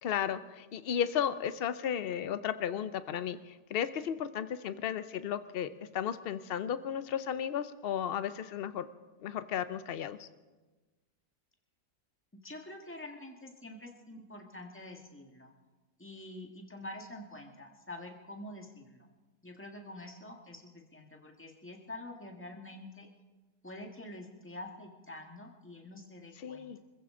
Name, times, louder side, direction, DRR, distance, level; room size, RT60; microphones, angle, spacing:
voice 1, 0.0-8.9 9.2-10.3 26.4-26.8, left 9 dB, 70° left, 12 dB, 0.5 m, -34 dB
voice 2, 12.4-15.5 16.0-19.1 19.4-23.1 23.6-26.8, left 1 dB, 10° left, 2 dB, 1.5 m, -47 dB
25.5 x 15.0 x 3.7 m, 1.2 s
omnidirectional pair, 1.8 m